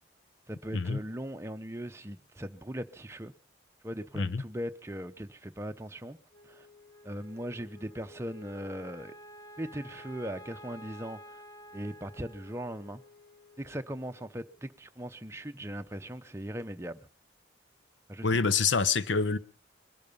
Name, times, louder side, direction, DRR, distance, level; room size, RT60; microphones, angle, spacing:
voice 1, 0.5-3.3 3.8-6.2 6.4-6.7 7.0-9.1 9.6-11.4 11.7-13.0 13.6-17.1 18.1-18.3, equal, 15° right, 0.7 m, -39 dB
Wind instrument woodwind instrument, 6.3-14.8, equal, 15° left, 1.2 m, -52 dB
voice 2, 18.2-19.4, left 5 dB, 75° left, 0.8 m, -26 dB
21.0 x 12.0 x 5.4 m
head